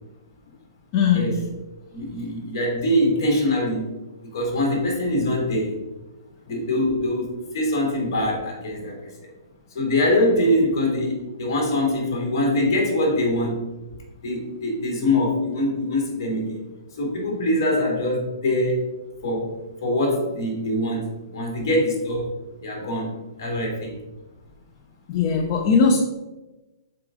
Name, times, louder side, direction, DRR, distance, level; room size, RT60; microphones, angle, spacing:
voice 1, 0.9-1.3 25.1-26.0, left 5 dB, 25° left, 2 dB, 0.4 m, -19 dB
voice 2, 1.9-3.9 4.2-5.8 6.5-9.3 9.7-13.6 14.2-16.6 17.0-18.8 19.2-24.0, left 1 dB, 45° left, -1 dB, 2.2 m, -23 dB
5.7 x 4.7 x 3.8 m, 1.1 s
hypercardioid pair, 170°, 3 cm